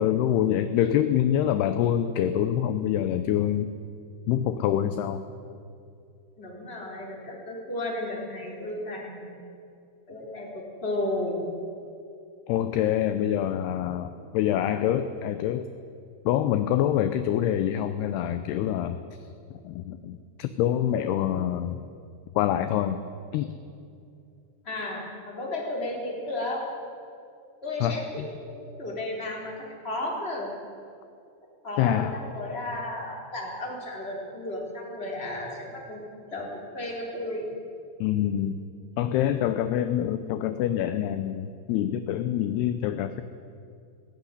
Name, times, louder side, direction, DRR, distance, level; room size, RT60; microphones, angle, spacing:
voice 1, 0.0-3.7 4.3-5.2 12.5-15.7 16.3-19.0 19.5-21.8 22.4-23.0 23.3-23.5 27.8-28.3 31.8-32.2 38.0-38.6 39.0-43.2, left 11 dB, 80° left, 10 dB, 2.5 m, -26 dB
voice 2, 6.4-9.3 10.1-11.4 24.6-26.6 27.6-30.5 31.6-36.0 36.3-37.5, left 1 dB, 15° left, -2 dB, 3.6 m, -33 dB
18.5 x 16.0 x 9.8 m, 2.5 s
omnidirectional pair, 5.3 m